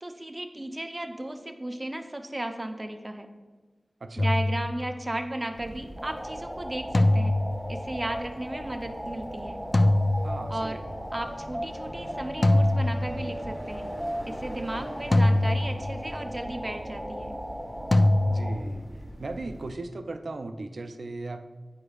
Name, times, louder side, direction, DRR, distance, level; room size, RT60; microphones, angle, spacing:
voice 1, 0.0-3.3 4.2-7.3 7.7-9.6 10.5-10.8 11.1-13.8 14.3-17.3, right 1 dB, 30° right, 5 dB, 0.6 m, -35 dB
sound 1, 4.2-5.2 6.9-8.1 9.7-10.9 12.4-13.6 15.1-16.3 17.9-18.8, left 1 dB, 50° left, 0.3 m, -24 dB
sound 2, 5.5-19.7, equal, 70° left, 1.2 m, -43 dB
sound 3, 6.0-18.5, equal, 20° left, 1.3 m, -37 dB
voice 2, 10.2-10.8 18.3-18.8 19.2-21.4, right 2 dB, 80° right, 7 dB, 0.4 m, -37 dB
9.6 x 4.8 x 2.4 m, 1.3 s
wide cardioid pair, 55°, 0 cm